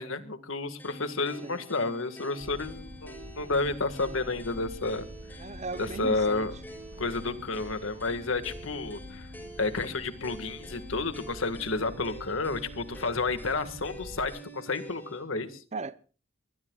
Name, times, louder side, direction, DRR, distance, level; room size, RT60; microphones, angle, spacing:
voice 1, 0.0-5.1 5.3-5.4 5.8-6.5 7.0-9.3 9.6-15.6, left 3 dB, 90° left, 1.7 m, -31 dB
sound 1, 0.8-15.2, equal, 10° left, 5.3 m, -47 dB
sound 2, 2.4-14.3, equal, 65° right, 5.0 m, -46 dB
voice 2, 5.4-6.5 15.7-16.0, right 3 dB, 35° right, 0.6 m, -37 dB
23.0 x 21.0 x 2.4 m
head